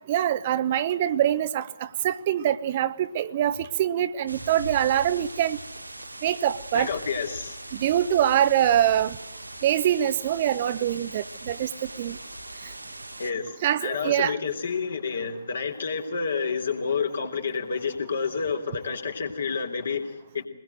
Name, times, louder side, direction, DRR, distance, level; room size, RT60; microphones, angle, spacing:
voice 1, 0.1-5.6 6.2-6.9 7.7-9.2 9.6-11.7 12.0-12.2 13.6-14.3, right 11 dB, 35° right, 13 dB, 0.9 m, -24 dB
sound 1, 4.3-13.3, right 1 dB, 90° right, 1.5 m, -40 dB
voice 2, 6.7-7.6 13.2-20.5, left 5 dB, 60° left, 5 dB, 3.4 m, -29 dB
22.0 x 21.0 x 7.9 m, 0.84 s
figure-of-eight pair, 135°, 0 cm